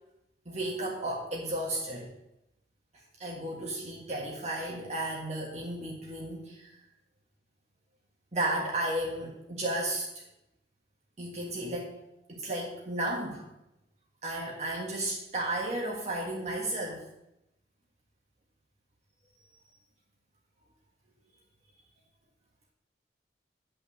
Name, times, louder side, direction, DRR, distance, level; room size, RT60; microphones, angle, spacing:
voice 1, 0.4-2.1 3.2-6.7 8.3-10.2 11.2-11.9 12.3-13.4 14.2-17.0, right 1 dB, 40° right, -2 dB, 1.6 m, -33 dB
9.3 x 5.6 x 7.3 m, 0.88 s
head